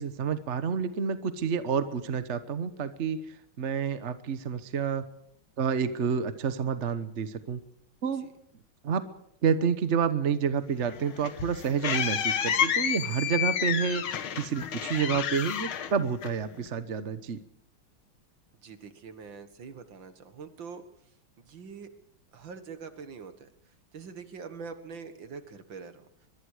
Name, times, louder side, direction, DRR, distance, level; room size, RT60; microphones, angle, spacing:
voice 1, 0.0-5.0 5.6-7.6 8.0-8.3 8.8-9.0 9.4-14.0 14.3-17.4, right 6 dB, 45° right, 11 dB, 1.2 m, -29 dB
sound 1, 10.9-16.7, left 9 dB, 90° left, 2.1 m, -30 dB
voice 2, 18.6-20.8 21.4-21.9 22.3-23.5 23.9-26.1, right 5 dB, 65° right, 9 dB, 2.4 m, -44 dB
23.5 x 23.0 x 5.0 m, 0.71 s
omnidirectional pair, 2.2 m